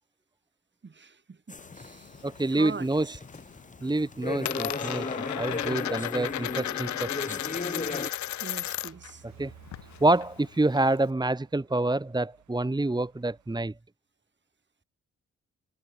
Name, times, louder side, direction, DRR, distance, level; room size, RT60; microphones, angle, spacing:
voice 1, 0.8-3.2 5.8-6.0 6.9-7.0 7.9-9.2, right 5 dB, 40° right, 3.1 m, -44 dB
sound 1, 1.5-8.1, left 3 dB, 25° left, 5.1 m, -36 dB
Coin (dropping), 1.6-2.7 3.1-3.6 3.8-9.1 9.4-11.1, left 14 dB, 75° left, 0.9 m, -35 dB
voice 2, 2.2-3.1 3.8-7.4 9.4-9.5 10.0-13.7, right 2 dB, 15° right, 1.5 m, -27 dB
sound 2, 7.7-13.6, right 10 dB, 75° right, 7.0 m, -57 dB
supercardioid pair, 50°, 29 cm